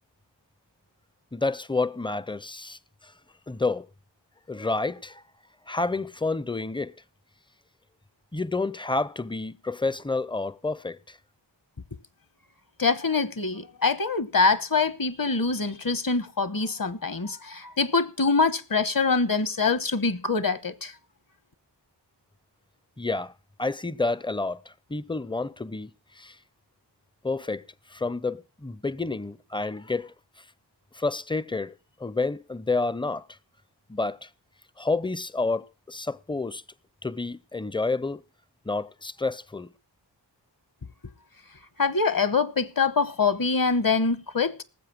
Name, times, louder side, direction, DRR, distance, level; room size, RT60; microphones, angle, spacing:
voice 1, 1.3-3.1 3.5-3.9 4.5-5.2 5.7-6.9 8.3-11.2 23.0-23.3 23.6-25.9 26.2-26.4 27.2-27.6 27.9-30.1 30.9-31.7 32.0-33.3 33.9-34.3 34.8-36.6 37.0-38.2 38.7-39.7, left 3 dB, 10° left, 0.6 m, -29 dB
voice 2, 12.8-20.9 41.8-44.6, left 4 dB, 50° left, 1.1 m, -24 dB
19.0 x 7.5 x 6.0 m
wide cardioid pair, 50°, 43 cm